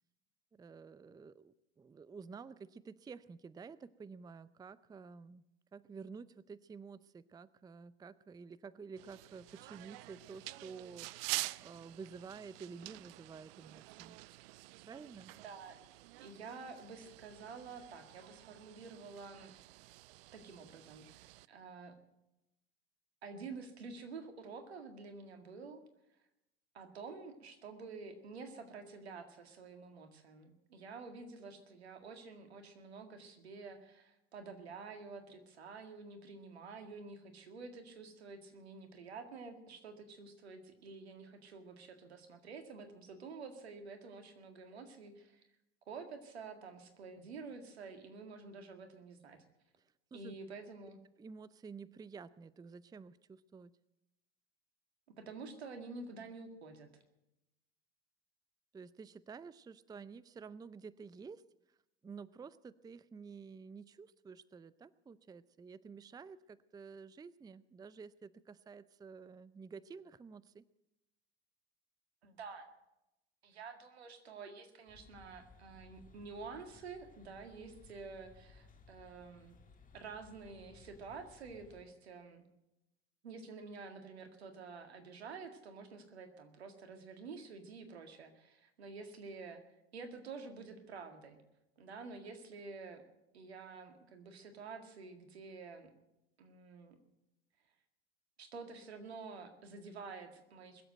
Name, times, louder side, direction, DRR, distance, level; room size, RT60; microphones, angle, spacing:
voice 1, 0.5-5.4 5.7-14.2 14.8-15.3 50.1-50.3 51.2-53.7 58.7-61.8 62.0-70.6, right 5 dB, 10° right, 18 dB, 0.5 m, -51 dB
sound 1, 9.0-21.5, right 20 dB, 65° right, 0.5 m, -47 dB
voice 2, 15.3-15.8 16.2-19.5 20.3-22.0 23.2-25.8 26.7-45.4 45.9-49.4 50.1-51.0 55.2-56.9 72.2-72.7 73.4-79.6 79.9-82.4 83.2-89.6 89.9-91.4 91.8-93.0 93.3-95.9 96.4-97.0 98.4-100.8, right 4 dB, 85° right, 6 dB, 2.0 m, -49 dB
sound 2, 74.9-81.8, left 4 dB, 25° left, 2.2 m, -61 dB
21.5 x 7.9 x 7.8 m, 0.90 s
hypercardioid pair, 75°, 31 cm